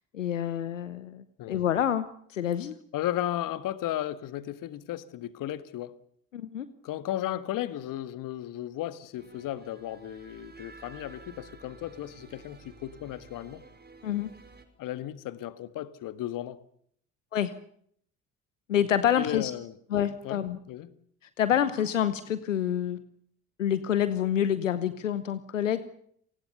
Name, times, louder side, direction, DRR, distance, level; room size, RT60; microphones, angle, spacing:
voice 1, 0.1-2.7 6.3-6.7 14.0-14.3 17.3-17.5 18.7-19.5 19.9-20.6 21.4-23.0 23.6-25.8, left 10 dB, 90° left, 1.0 m, -27 dB
voice 2, 2.9-5.9 6.8-13.6 14.8-16.6 19.2-19.8 20.2-20.4 20.7-20.9, left 13 dB, 60° left, 1.7 m, -35 dB
sound 1, 9.2-14.6, right 4 dB, 25° right, 5.4 m, -51 dB
28.5 x 19.5 x 6.9 m
hypercardioid pair, 55°, 37 cm